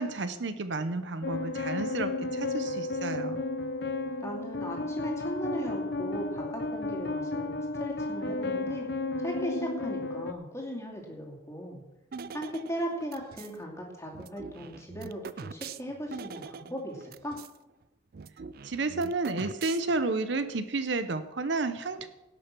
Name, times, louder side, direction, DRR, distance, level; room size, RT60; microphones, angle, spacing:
voice 1, 0.0-3.4 18.6-22.1, right 3 dB, 65° right, 11 dB, 0.8 m, -31 dB
sound 1, 1.2-10.3, left 2 dB, 60° left, 0.8 m, -33 dB
voice 2, 4.2-8.9 9.2-11.8 12.3-17.4, equal, 15° left, -1 dB, 2.6 m, -37 dB
sound 2, 12.1-13.6 14.1-17.6 17.8-17.9 18.1-20.1, right 5 dB, 50° right, 0.4 m, -43 dB
17.5 x 6.5 x 6.0 m, 1.0 s
head